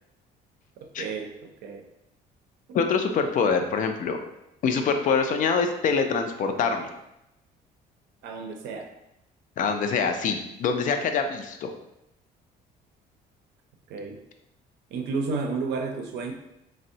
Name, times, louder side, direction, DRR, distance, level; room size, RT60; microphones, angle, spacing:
voice 1, 1.0-1.8 8.2-8.9 13.9-14.2 14.9-16.3, right 4 dB, 75° right, 3 dB, 0.5 m, -31 dB
voice 2, 2.7-4.2 4.6-6.9 9.6-11.7, left 5 dB, 50° left, 6 dB, 0.4 m, -25 dB
3.4 x 2.0 x 2.7 m, 0.86 s
cardioid pair, 110°, 17 cm